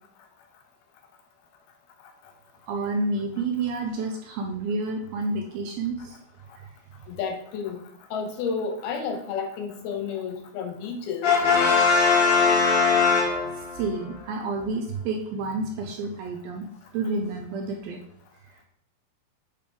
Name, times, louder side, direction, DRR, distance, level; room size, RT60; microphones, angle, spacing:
voice 1, 2.7-6.2 6.6-6.7 13.4-16.7 16.9-18.0, right 3 dB, 80° right, 2 dB, 2.2 m, -29 dB
voice 2, 7.1-7.8 8.1-11.3, left 5 dB, 80° left, 5 dB, 2.4 m, -31 dB
Brass instrument, 11.2-13.9, left 5 dB, 60° left, 1.8 m, -20 dB
8.4 x 3.5 x 5.1 m, 0.69 s
omnidirectional pair, 4.8 m